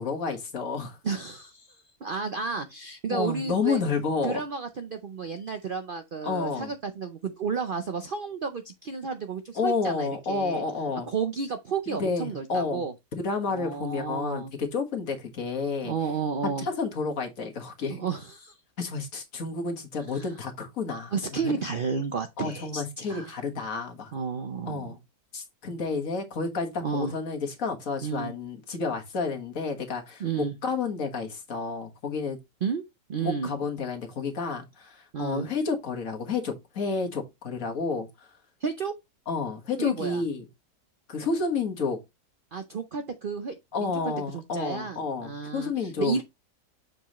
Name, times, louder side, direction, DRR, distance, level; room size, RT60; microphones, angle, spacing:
voice 1, 0.0-1.0 3.1-4.4 6.2-6.7 9.6-11.1 11.9-12.8 13.2-15.9 16.6-18.1 18.8-21.1 21.4-21.5 22.4-24.1 24.7-25.0 25.3-32.4 33.2-38.3 39.3-40.5 41.1-42.0 43.7-46.2, left 4 dB, 55° left, 1.8 m, -30 dB
voice 2, 1.0-3.8 4.2-10.6 11.1-12.9 13.5-14.5 15.8-16.7 17.9-18.5 20.1-20.3 21.1-23.3 24.1-24.9 26.8-27.1 28.0-28.3 30.2-30.5 32.6-32.8 33.1-33.5 35.1-35.5 38.6-38.9 39.8-40.2 42.5-43.9 44.3-46.2, right 5 dB, 90° right, 0.4 m, -32 dB
7.1 x 5.2 x 2.9 m
omnidirectional pair, 1.8 m